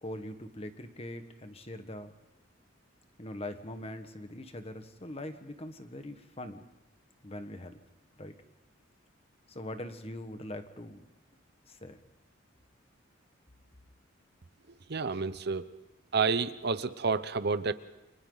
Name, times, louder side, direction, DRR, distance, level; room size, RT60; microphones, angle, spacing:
voice 1, 0.0-2.1 3.2-6.6 7.2-7.8 8.2-8.3 9.5-11.1 11.7-12.0, left 1 dB, 30° left, 8 dB, 1.5 m, -42 dB
voice 2, 14.9-15.7 16.1-17.7, right 4 dB, 55° right, 13 dB, 0.7 m, -29 dB
29.5 x 25.0 x 4.0 m, 1.0 s
head